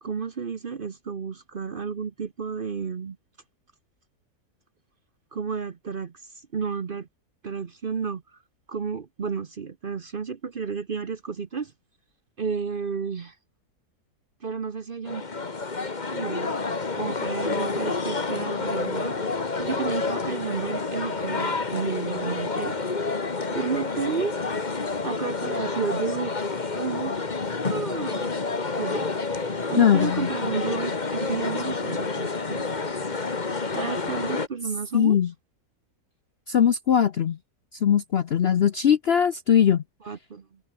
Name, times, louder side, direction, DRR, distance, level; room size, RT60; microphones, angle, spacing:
voice 1, 0.0-3.2 5.3-7.1 7.4-8.2 8.7-11.7 12.4-13.4 14.4-15.2 16.1-16.5 16.9-19.2 19.6-22.8 23.5-24.3 25.0-26.3 26.7-27.2 27.7-28.4 28.7-32.7 33.7-35.2 40.0-40.6, right 5 dB, 40° right, 0.9 m, -32 dB
sound 1, 15.1-34.5, left 4 dB, 30° left, 1.6 m, -29 dB
voice 2, 29.8-30.3 34.9-35.3 36.5-37.4 37.8-39.8, left 8 dB, 55° left, 0.7 m, -20 dB
omnidirectional pair, 1.7 m